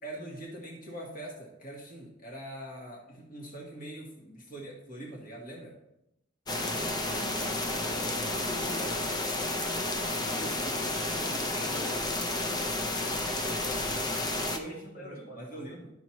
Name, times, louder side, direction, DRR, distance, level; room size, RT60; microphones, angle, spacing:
voice 1, 0.0-5.7 10.0-11.6 14.4-15.9, right 1 dB, 45° left, -2 dB, 1.5 m, -43 dB
sound 1, 6.5-14.6, left 2 dB, 20° left, 0.6 m, -31 dB
voice 2, 7.1-7.4 7.8-8.9 11.5-12.5 14.7-15.7, equal, 85° left, -2 dB, 2.1 m, -46 dB
11.5 x 5.7 x 3.1 m, 0.84 s
head